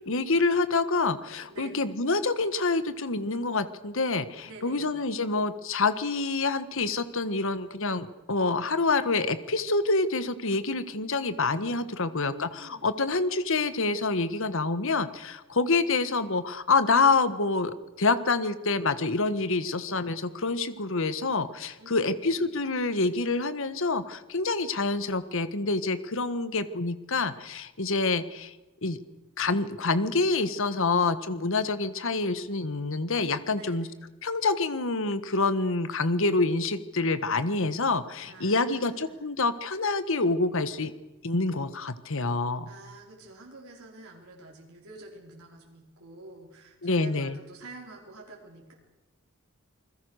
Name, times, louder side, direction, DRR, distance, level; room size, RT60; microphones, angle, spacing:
voice 1, 0.1-28.5 28.8-29.0 29.4-33.9 34.2-40.9 41.2-42.7 46.8-47.3, left 3 dB, 65° left, 13 dB, 1.5 m, -27 dB
voice 2, 1.5-1.9 4.4-5.0 12.0-12.9 21.7-22.6 33.5-34.1 38.2-39.3 42.7-48.7, right 2 dB, 85° right, -1 dB, 4.9 m, -48 dB
28.0 x 21.5 x 6.5 m, 1.1 s
head